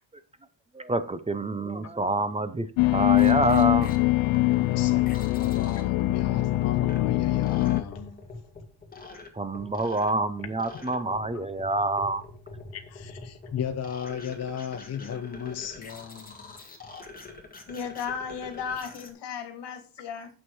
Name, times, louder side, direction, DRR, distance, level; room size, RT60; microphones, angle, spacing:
voice 1, 0.7-3.9 9.3-12.2, right 2 dB, 15° right, 0.5 m, -27 dB
sound 1, 2.8-7.8, left 19 dB, 85° left, 0.5 m, -23 dB
sound 2, 3.1-19.1, left 3 dB, 20° left, 1.8 m, -44 dB
voice 2, 4.3-8.2 11.3-11.4 12.7-16.6, left 8 dB, 35° left, 0.6 m, -36 dB
voice 3, 17.7-20.3, left 7 dB, 60° left, 1.9 m, -35 dB
8.8 x 6.5 x 4.7 m
cardioid pair, 145°, 47 cm